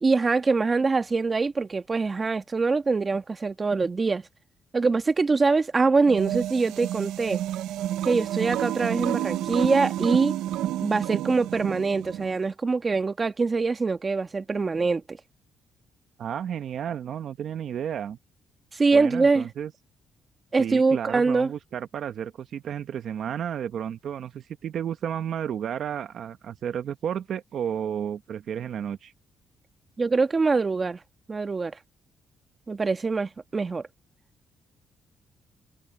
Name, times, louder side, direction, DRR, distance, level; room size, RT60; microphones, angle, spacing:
voice 1, 0.0-4.2 4.7-7.4 8.0-10.3 10.8-15.2 18.7-19.5 20.5-21.5 30.0-31.0 31.3-31.7 32.7-33.8, right 4 dB, 30° right, 1.4 m, -24 dB
sound 1, 6.0-12.3, right 13 dB, 90° right, 0.5 m, -30 dB
voice 2, 16.2-18.2 18.9-19.7 20.6-29.1, right 9 dB, 65° right, 1.0 m, -32 dB
cardioid pair, 90°, 0 cm